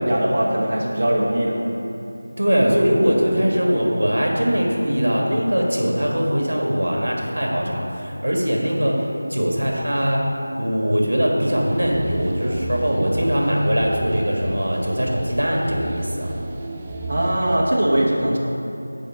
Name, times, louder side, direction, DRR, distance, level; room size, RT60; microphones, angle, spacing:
voice 1, 0.0-1.7 17.1-18.4, right 1 dB, 45° right, -3 dB, 1.0 m, -21 dB
voice 2, 2.3-9.0 9.3-10.2 10.6-16.3, equal, 70° right, -1 dB, 1.6 m, -21 dB
sound 1, 11.5-17.6, right 2 dB, 15° right, 0.4 m, -32 dB
7.3 x 5.4 x 4.9 m, 2.8 s
figure-of-eight pair, 170°, 0 cm